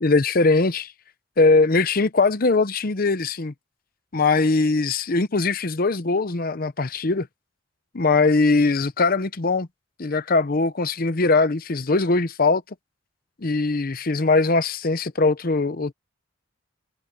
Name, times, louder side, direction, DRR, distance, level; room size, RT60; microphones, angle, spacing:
voice 1, 0.0-0.9 1.4-3.5 4.1-7.3 7.9-9.7 10.0-12.6 13.4-15.9, left 3 dB, 45° left, 0.8 m, -21 dB
head